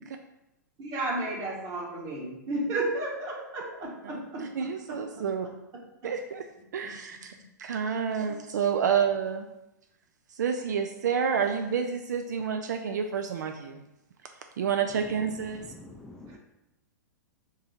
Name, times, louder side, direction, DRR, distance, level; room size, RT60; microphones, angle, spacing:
voice 1, 0.8-4.4 16.3-16.4, right 2 dB, 35° right, -2 dB, 1.3 m, -32 dB
voice 2, 4.0-5.5 6.0-6.5 6.7-7.3 7.6-9.4 10.3-13.8 14.6-15.7, right 7 dB, 70° right, 6 dB, 0.4 m, -29 dB
voice 3, 14.9-16.4, left 2 dB, 5° left, -1 dB, 0.4 m, -47 dB
3.6 x 3.1 x 4.2 m, 0.92 s
hypercardioid pair, 110°, 10 cm